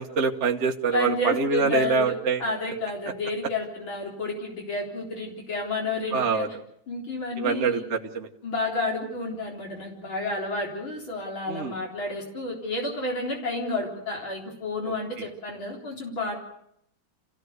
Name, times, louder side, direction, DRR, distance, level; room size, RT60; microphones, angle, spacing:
voice 1, 0.0-2.4 6.1-6.5 7.4-8.3 11.5-11.7, right 5 dB, 40° right, 2 dB, 1.4 m, -25 dB
voice 2, 0.9-2.1 2.4-6.5 6.9-7.8 8.4-16.3, left 2 dB, 80° left, -1 dB, 4.7 m, -30 dB
27.5 x 15.5 x 8.1 m, 0.74 s
omnidirectional pair, 2.2 m